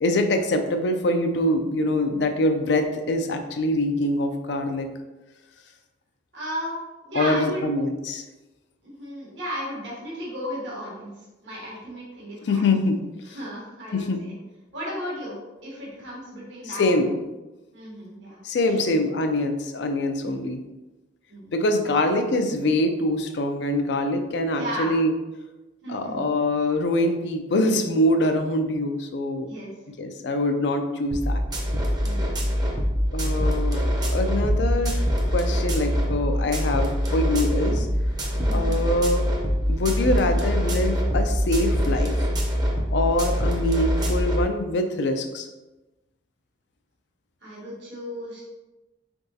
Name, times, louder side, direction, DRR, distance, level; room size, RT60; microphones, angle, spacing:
voice 1, 0.0-4.9 7.1-8.2 12.4-13.0 13.3-13.4 13.9-14.2 16.8-17.1 18.4-20.6 21.5-25.1 25.9-29.5 30.0-31.4 33.1-33.8 34.1-35.0 35.3-37.9 38.5-39.3 39.7-42.1 42.9-45.5, left 1 dB, 70° left, 6 dB, 0.4 m, -24 dB
voice 2, 6.3-7.6 8.8-11.1 11.4-12.6 13.3-14.1 14.7-15.4 15.6-17.1 17.7-18.4 18.7-18.8 20.2-20.3 21.3-21.7 24.5-24.9 25.8-26.2 29.5-29.7 32.0-32.8 38.4-38.7 47.4-48.4, equal, 80° right, -6 dB, 1.5 m, -35 dB
sound 1, 31.1-44.4, equal, 20° right, 0.6 m, -24 dB
3.8 x 3.5 x 2.7 m, 1.1 s
head